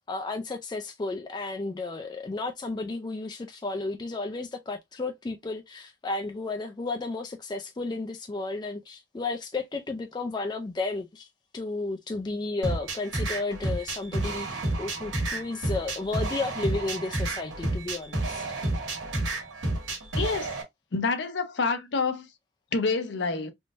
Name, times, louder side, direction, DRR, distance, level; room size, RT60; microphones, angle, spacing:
voice 1, 0.0-11.3 11.5-18.4, left 3 dB, 20° left, 0.3 m, -33 dB
sound 1, 12.6-20.6, right 2 dB, 75° right, 1.4 m, -30 dB
voice 2, 20.2-20.5 20.9-22.3 22.7-23.5, left 4 dB, 65° left, 0.6 m, -27 dB
3.5 x 2.6 x 2.4 m
head